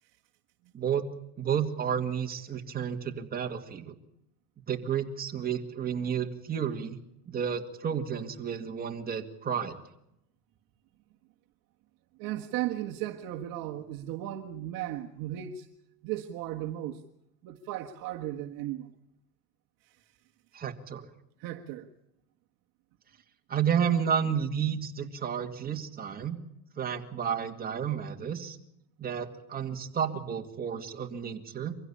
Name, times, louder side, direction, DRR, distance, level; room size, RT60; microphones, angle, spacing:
voice 1, 1.4-3.9 4.7-7.0 7.3-9.8 20.5-21.1 23.5-26.4 26.8-28.6 29.0-31.8, right 8 dB, 20° right, 2.2 m, -31 dB
voice 2, 12.2-15.7 16.0-17.0 17.4-18.9 21.4-21.9, right 13 dB, 45° right, 1.6 m, -35 dB
24.0 x 16.0 x 8.6 m
supercardioid pair, 135°, 48 cm